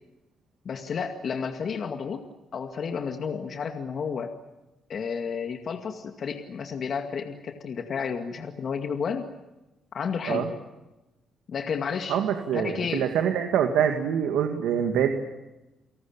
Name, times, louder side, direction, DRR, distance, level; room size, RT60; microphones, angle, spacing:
voice 1, 0.7-2.2 2.5-4.3 4.9-9.3 9.9-10.5 11.5-12.2 12.5-13.1, left 6 dB, 55° left, 5 dB, 2.1 m, -31 dB
voice 2, 12.1-15.1, right 8 dB, 85° right, 5 dB, 2.3 m, -25 dB
29.5 x 18.5 x 9.0 m, 1.0 s
cardioid pair, 90°, 0 cm